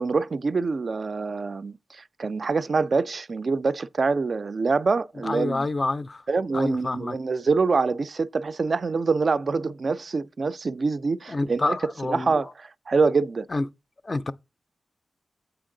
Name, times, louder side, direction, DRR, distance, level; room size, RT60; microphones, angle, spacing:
voice 1, 0.0-5.7 6.3-11.8 12.0-13.5, right 4 dB, 45° right, 0.3 m, -25 dB
voice 2, 5.2-6.2 6.5-7.2 11.3-12.3 13.5-13.7 14.0-14.3, left 2 dB, 30° left, 0.4 m, -28 dB
8.0 x 4.5 x 3.8 m
wide cardioid pair, 145°, 0 cm